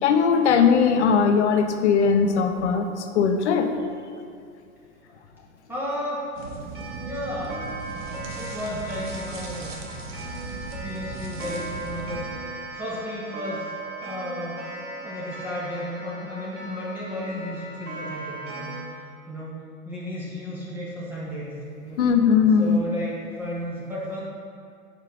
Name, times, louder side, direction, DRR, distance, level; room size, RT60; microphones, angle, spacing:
voice 1, 0.0-3.7 22.0-22.8, left 6 dB, 55° left, 7 dB, 0.6 m, -19 dB
voice 2, 5.7-6.3 7.0-7.6 8.3-9.7 10.8-12.3 12.7-13.7 14.0-14.7 15.0-18.7 19.3-21.5 21.8-22.0 22.6-24.2, equal, 5° right, -7 dB, 0.4 m, -33 dB
sound 1, 6.3-12.2, right 3 dB, 45° right, 0.9 m, -37 dB
Clock, 6.7-18.8, right 2 dB, 25° right, 1.3 m, -38 dB
5.1 x 4.5 x 4.9 m, 2.4 s
figure-of-eight pair, 105°, 43 cm